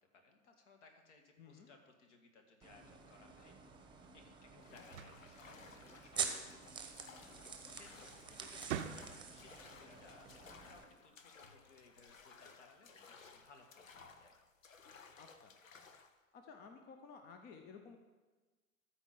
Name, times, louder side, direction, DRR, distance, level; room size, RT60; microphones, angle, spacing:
voice 1, 0.1-3.5 4.1-7.0 7.7-14.4, left 3 dB, 60° left, 3 dB, 1.9 m, -63 dB
voice 2, 1.4-1.7 4.7-4.8 15.2-15.5 16.3-18.0, left 5 dB, 25° left, 6 dB, 0.7 m, -55 dB
sound 1, 2.6-10.8, right 6 dB, 10° right, 1.0 m, -47 dB
sound 2, 4.6-16.2, left 5 dB, 75° left, 0.9 m, -59 dB
sound 3, 4.7-6.2 7.7-7.9 8.3-9.5, right 9 dB, 60° right, 0.7 m, -46 dB
13.0 x 4.5 x 7.3 m, 1.3 s
figure-of-eight pair, 90°, 40 cm